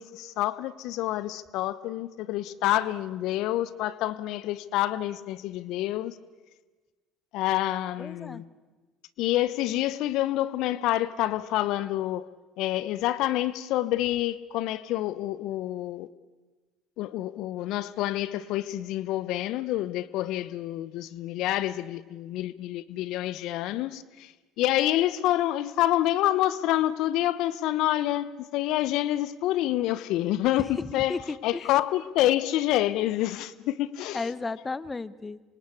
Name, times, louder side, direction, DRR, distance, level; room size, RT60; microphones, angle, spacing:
voice 1, 0.0-6.2 7.3-8.4 9.2-12.2 12.6-16.1 17.0-24.3 24.6-31.2 31.4-34.2, left 14 dB, 65° left, 0.8 m, -27 dB
voice 2, 8.0-8.4 30.7-31.7 34.1-35.4, left 3 dB, 25° left, 1.0 m, -34 dB
26.5 x 25.0 x 8.4 m
hypercardioid pair, 70°, 0 cm